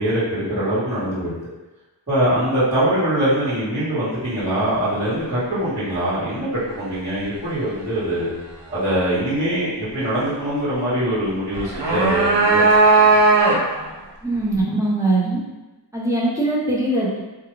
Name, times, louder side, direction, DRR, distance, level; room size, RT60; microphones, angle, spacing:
voice 1, 0.0-1.3 2.1-8.3 8.7-12.7 12.9-13.2, right 1 dB, 30° right, -15 dB, 1.4 m, -23 dB
sound 1, 11.5-13.9, right 3 dB, 75° right, 0.7 m, -16 dB
voice 2, 14.2-15.4 15.9-17.2, right 2 dB, 5° right, -6 dB, 0.8 m, -21 dB
2.4 x 2.3 x 3.1 m, 1.1 s
wide cardioid pair, 75°, 43 cm